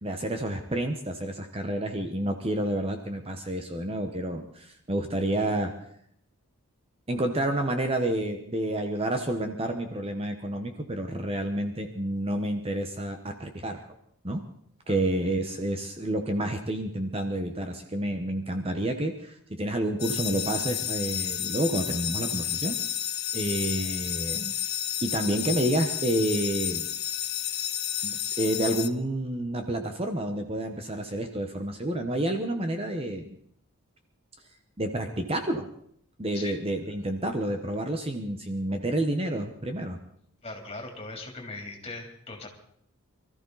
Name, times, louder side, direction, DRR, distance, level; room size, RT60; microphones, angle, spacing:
voice 1, 0.0-5.7 7.1-13.8 14.2-14.4 14.9-22.8 23.3-24.5 25.0-26.9 28.0-33.4 34.8-35.7 36.2-40.0, right 1 dB, 25° right, 5 dB, 1.0 m, -29 dB
sound 1, 20.0-28.9, left 10 dB, 45° left, 0.9 m, -31 dB
voice 2, 40.4-42.5, left 2 dB, 25° left, 1 dB, 3.2 m, -39 dB
24.0 x 14.0 x 4.1 m, 0.67 s
head